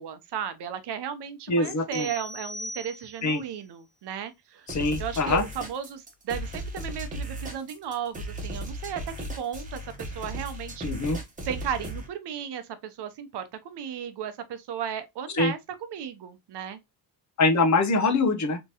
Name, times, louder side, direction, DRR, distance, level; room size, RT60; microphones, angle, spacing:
voice 1, 0.0-4.7 5.0-10.9 11.5-16.8, right 8 dB, 80° right, 0.7 m, -35 dB
voice 2, 1.5-2.1 3.2-3.4 4.7-5.4 10.8-11.2 15.3-15.5 17.4-18.6, left 3 dB, 45° left, 0.7 m, -24 dB
sound 1, 1.9-3.4, left 1 dB, 70° left, 1.1 m, -39 dB
sound 2, 4.7-12.1, right 1 dB, 20° right, 1.0 m, -36 dB
3.5 x 3.0 x 2.7 m
wide cardioid pair, 165°, 40 cm